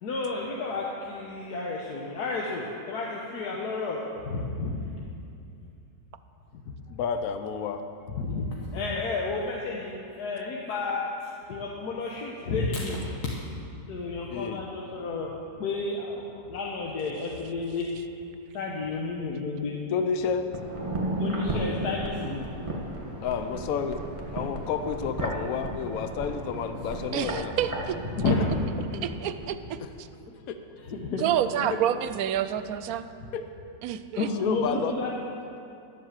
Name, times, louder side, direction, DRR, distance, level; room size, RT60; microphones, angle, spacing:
voice 1, 0.0-4.8 8.2-13.0 13.9-17.9 18.5-19.8 21.2-22.4 28.2-28.4 30.9-31.2 31.6-31.7 34.2-35.1, left 3 dB, 90° left, -2 dB, 1.6 m, -31 dB
voice 2, 6.9-7.8 14.3-14.6 19.9-20.4 23.2-24.0 24.3-27.5 29.8-29.9 30.5-30.6 33.3-33.4 34.4-34.9, left 6 dB, 70° left, 8 dB, 1.1 m, -30 dB
sound 1, 20.5-29.5 29.8-29.9, right 1 dB, 20° right, 1.5 m, -34 dB
voice 3, 27.1-28.0 29.0-30.1 31.2-33.0 33.8-34.3, right 10 dB, 75° right, 11 dB, 1.0 m, -28 dB
12.0 x 7.7 x 7.4 m, 2.5 s
omnidirectional pair, 1.6 m